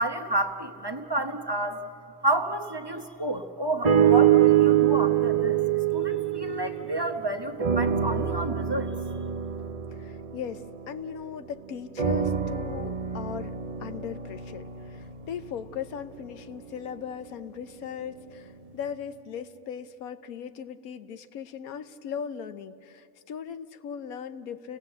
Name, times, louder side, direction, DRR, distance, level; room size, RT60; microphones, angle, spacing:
voice 1, 0.0-1.9 2.2-5.6 5.9-8.9, right 1 dB, 20° right, 5 dB, 0.9 m, -30 dB
sound 1, 3.8-7.2 7.6-11.3 12.0-16.2 16.8-16.9, right 10 dB, 40° right, 0.6 m, -25 dB
voice 2, 9.9-13.5 13.8-24.8, left 7 dB, 80° left, 12 dB, 1.3 m, -38 dB
29.5 x 18.0 x 7.9 m, 2.6 s
omnidirectional pair, 1.5 m